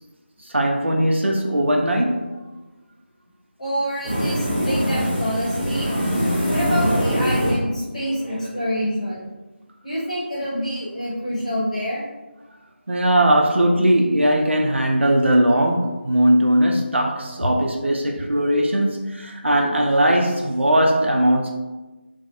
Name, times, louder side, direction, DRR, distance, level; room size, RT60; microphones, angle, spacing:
voice 1, 0.4-2.4 12.9-21.5, right 1 dB, 80° right, 1 dB, 0.5 m, -19 dB
voice 2, 3.6-5.9 6.5-9.2 9.8-12.0, equal, 35° left, -6 dB, 0.8 m, -26 dB
sound 1, 4.0-8.6, equal, 10° right, 0.5 m, -23 dB
2.5 x 2.0 x 2.6 m, 1.1 s
figure-of-eight pair, 170°, 6 cm